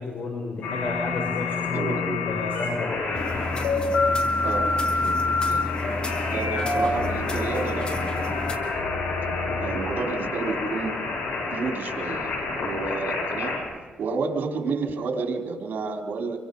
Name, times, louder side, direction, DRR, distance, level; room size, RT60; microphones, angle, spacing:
voice 1, 0.0-3.5 6.4-6.6 9.4-9.7, left 3 dB, 60° left, 0 dB, 6.5 m, -31 dB
sound 1, 0.6-13.6, left 3 dB, 90° left, 7.4 m, -27 dB
voice 2, 1.7-2.2 4.4-5.7 6.3-8.4 9.3-11.0 11.5-13.6 14.0-16.4, right 4 dB, 70° right, 4 dB, 3.8 m, -31 dB
sound 2, 3.1-8.6, left 2 dB, 30° left, 3.0 m, -32 dB
27.0 x 23.5 x 5.4 m, 1.4 s
cardioid pair, 105°, 3 cm